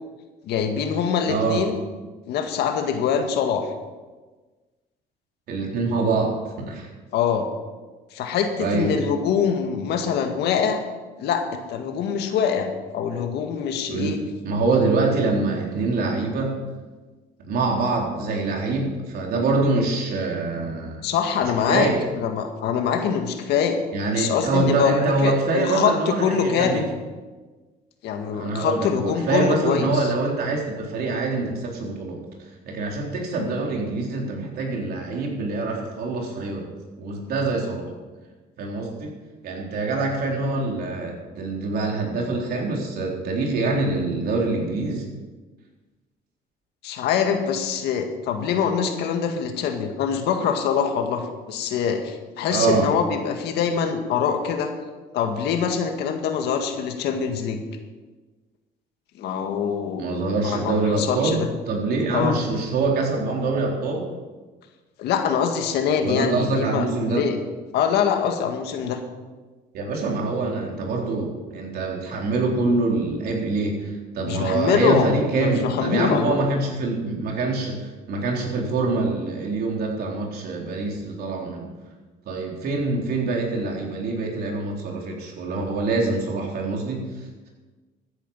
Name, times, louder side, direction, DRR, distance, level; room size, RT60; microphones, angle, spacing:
voice 1, 0.4-1.7 2.3-3.7 7.1-7.5 8.1-10.8 11.2-14.2 21.0-21.9 22.2-23.8 24.2-24.9 25.2-26.9 28.0-30.1 33.4-33.6 46.8-54.7 55.1-57.6 59.2-60.0 60.4-61.5 62.1-62.4 65.0-67.4 67.7-69.0 74.3-76.4, left 7 dB, 80° left, 5 dB, 1.9 m, -24 dB
voice 2, 1.3-1.6 5.5-6.9 8.6-9.0 13.9-16.5 17.4-21.0 21.4-22.1 23.9-26.8 28.3-32.2 32.7-36.7 37.0-37.9 38.6-39.2 39.4-45.0 52.5-52.9 60.0-61.4 61.7-64.1 66.0-67.2 69.7-77.8 78.1-81.7 82.3-87.1, right 3 dB, 65° right, -1 dB, 3.9 m, -25 dB
14.5 x 10.0 x 5.7 m, 1.3 s
cardioid pair, 110°, 17 cm